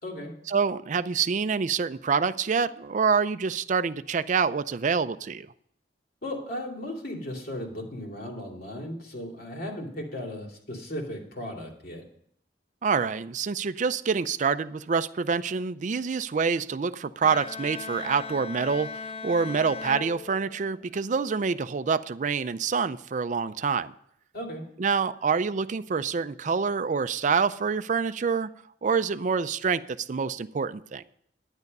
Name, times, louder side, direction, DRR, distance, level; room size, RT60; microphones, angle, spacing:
voice 1, 0.5-5.5 12.8-23.9 24.8-28.5 28.8-31.0, right 5 dB, 45° right, 14 dB, 0.4 m, -26 dB
voice 2, 6.2-12.0 24.3-24.6, left 1 dB, 60° left, 1 dB, 2.7 m, -36 dB
Bowed string instrument, 17.2-21.0, left 5 dB, 35° left, 0.4 m, -38 dB
10.5 x 9.8 x 5.3 m, 0.69 s
head